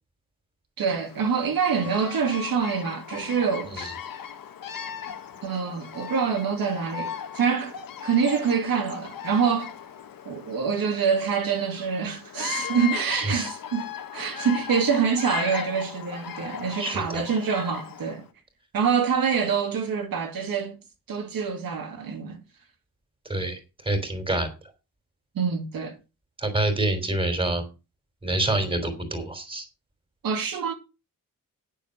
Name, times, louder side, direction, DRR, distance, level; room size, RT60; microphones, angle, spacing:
voice 1, 0.8-4.0 5.4-7.8 8.0-9.7 10.3-18.3 18.7-20.8 21.1-22.4 25.3-26.0 30.2-30.7, right 6 dB, 80° right, 2.4 m, -26 dB
Bird vocalization bird call bird song, 1.0-18.2, left 8 dB, 75° left, 1.6 m, -38 dB
voice 2, 13.1-13.5 16.8-17.2 23.3-24.5 26.4-27.6 28.2-29.6, right 2 dB, 15° right, 3.2 m, -27 dB
9.6 x 7.1 x 6.5 m
wide cardioid pair, 140°, 34 cm